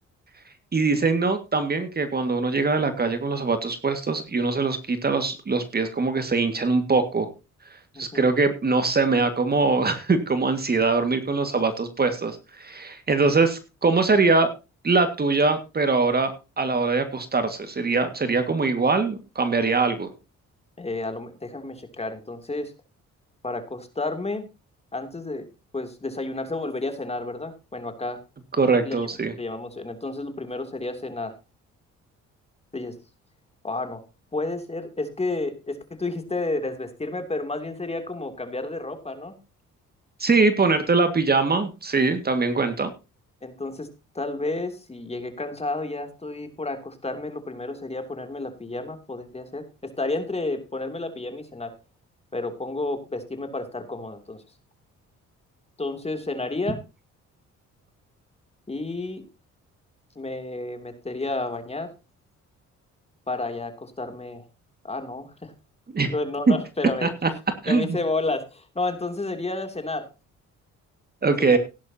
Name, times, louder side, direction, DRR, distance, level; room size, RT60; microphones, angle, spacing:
voice 1, 0.7-7.3 8.0-14.5 14.8-20.1 28.6-29.3 40.2-42.9 65.9-66.1 66.5-66.6 67.0-67.3 67.6-68.0 71.2-71.6, right 3 dB, 30° right, 9 dB, 2.0 m, -22 dB
voice 2, 7.9-8.3 20.8-22.7 23.4-24.5 24.9-25.5 25.7-28.2 28.8-29.0 29.4-31.3 32.7-32.9 33.6-34.0 34.3-39.4 43.4-43.9 44.1-51.7 52.3-54.4 55.8-56.8 58.7-59.2 60.2-61.9 63.3-64.4 64.8-65.5 66.1-67.1 67.7-70.1 71.5-71.6, left 2 dB, 20° left, 7 dB, 2.9 m, -31 dB
16.5 x 11.0 x 2.8 m, 0.30 s
cardioid pair, 90°, 30 cm